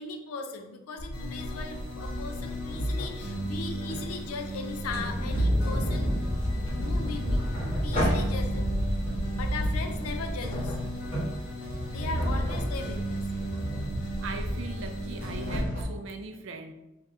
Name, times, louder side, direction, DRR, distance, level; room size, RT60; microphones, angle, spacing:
voice 1, 0.0-6.1 6.5-7.5 7.8-8.8 9.3-10.8 11.9-13.3, left 4 dB, 85° left, 5 dB, 0.4 m, -38 dB
sound 1, 1.0-15.8, equal, 25° left, 0.9 m, -32 dB
sound 2, 1.1-15.6, equal, 55° left, 0.8 m, -37 dB
Thunder, 4.7-11.3, equal, 5° right, 0.6 m, -32 dB
voice 2, 14.2-16.7, right 3 dB, 60° right, 5 dB, 0.4 m, -40 dB
3.3 x 2.4 x 2.7 m, 1.0 s
head